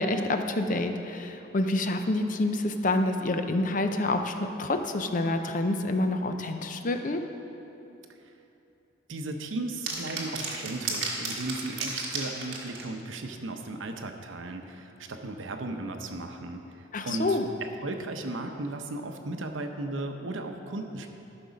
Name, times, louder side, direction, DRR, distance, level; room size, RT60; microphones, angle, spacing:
voice 1, 0.0-7.2 16.9-17.5, left 2 dB, 40° left, 6 dB, 0.5 m, -27 dB
voice 2, 9.1-17.4 17.8-21.1, right 2 dB, 80° right, 5 dB, 0.8 m, -36 dB
sound 1, 9.9-12.9, right 4 dB, 55° right, 1.6 m, -33 dB
13.0 x 6.0 x 5.2 m, 2.9 s
head